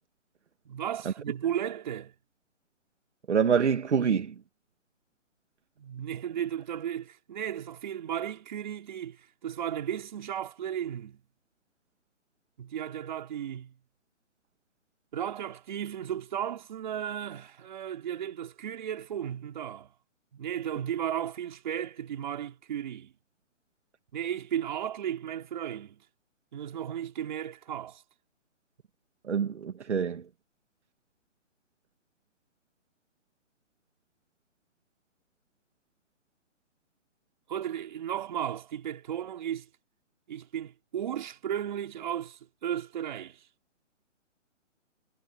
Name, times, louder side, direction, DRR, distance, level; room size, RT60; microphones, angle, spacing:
voice 1, 0.7-2.1 5.8-11.2 12.6-13.8 15.1-19.9 20.3-23.1 24.1-26.0 26.5-28.0 37.5-39.7 40.3-43.4, right 10 dB, 35° right, 3.9 m, -35 dB
voice 2, 3.3-4.3 29.3-30.2, right 7 dB, 60° right, 2.4 m, -26 dB
hypercardioid pair, 170°, 38 cm